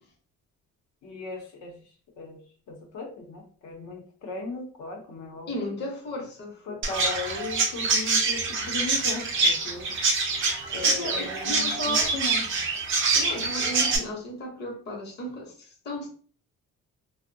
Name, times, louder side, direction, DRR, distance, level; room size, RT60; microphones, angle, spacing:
voice 1, 1.0-1.7 2.2-2.4 2.7-5.7 6.7-9.9 10.7-12.4, left 3 dB, 70° left, 0.7 m, -37 dB
voice 2, 5.5-6.8 10.8-12.2 13.1-16.1, equal, 35° left, 0.7 m, -35 dB
Chirp tweet, 6.8-14.0, right 3 dB, 40° right, 0.5 m, -25 dB
2.5 x 2.0 x 2.5 m
cardioid pair, 160°, 30 cm